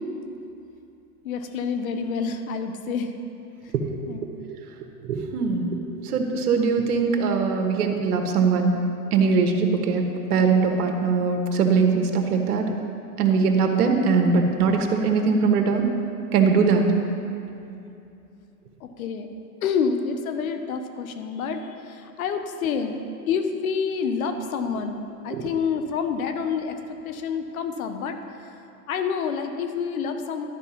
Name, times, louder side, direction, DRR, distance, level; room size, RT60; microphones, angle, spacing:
voice 1, 1.2-3.1 4.1-4.3 18.8-19.3 19.6-23.0 23.3-28.5 28.9-30.5, left 6 dB, 65° left, 7 dB, 1.0 m, -28 dB
voice 2, 5.0-8.8 9.1-10.0 10.3-12.6 13.2-15.9 16.3-16.9 25.3-25.4, right 5 dB, 75° right, 4 dB, 1.3 m, -21 dB
12.0 x 4.9 x 5.7 m, 2.7 s
hypercardioid pair, 140°, 46 cm